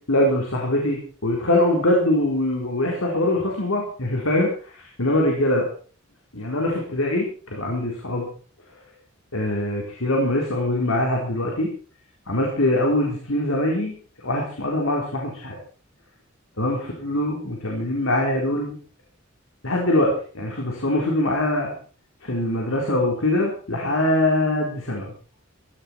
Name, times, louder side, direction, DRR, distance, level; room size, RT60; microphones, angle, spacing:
voice 1, 0.1-5.6 6.3-8.3 9.3-11.7 12.3-15.6 16.6-18.7 19.6-21.7 22.2-25.1, left 1 dB, 85° left, -1 dB, 4.4 m, -23 dB
16.5 x 15.0 x 4.6 m, 0.41 s
head